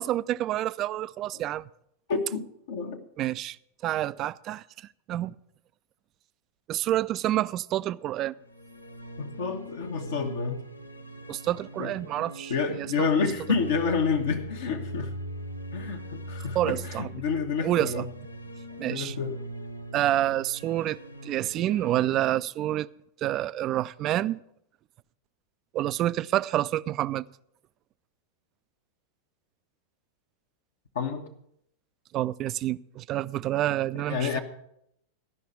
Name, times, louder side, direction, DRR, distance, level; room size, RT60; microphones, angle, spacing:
voice 1, 0.0-1.7 3.2-3.6 3.8-4.6 5.1-5.3 6.7-8.3 11.3-12.9 16.5-17.1 17.6-18.0 18.8-19.1 19.9-22.9 23.2-24.4 25.7-27.2 32.1-34.4, right 13 dB, 35° right, 0.3 m, -28 dB
voice 2, 2.1-3.0 9.2-10.6 11.8-11.9 12.5-15.1 15.7-18.1 18.9-19.4 30.9-31.3 34.1-34.4, left 5 dB, 60° left, 1.1 m, -29 dB
sound 1, 8.4-22.2, right 1 dB, 85° left, 0.7 m, -41 dB
13.0 x 5.7 x 8.3 m
figure-of-eight pair, 90°, 0 cm